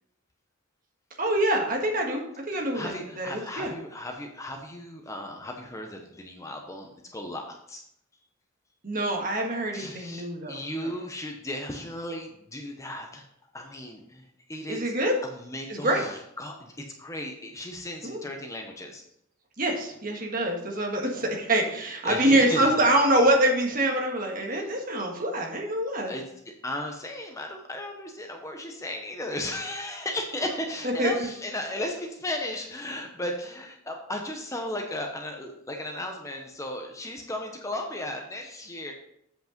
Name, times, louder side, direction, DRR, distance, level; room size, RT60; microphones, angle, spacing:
voice 1, 1.2-3.7 8.8-10.9 14.7-15.2 15.7-16.0 18.0-18.2 19.6-26.1 30.8-31.3, right 1 dB, 40° right, 1 dB, 1.6 m, -25 dB
voice 2, 2.5-7.8 9.7-13.2 13.5-14.9 15.2-19.0 22.0-22.7 24.5-24.6 26.1-26.2 26.6-38.9, left 1 dB, 15° left, 3 dB, 0.8 m, -35 dB
8.0 x 5.3 x 5.2 m, 0.74 s
head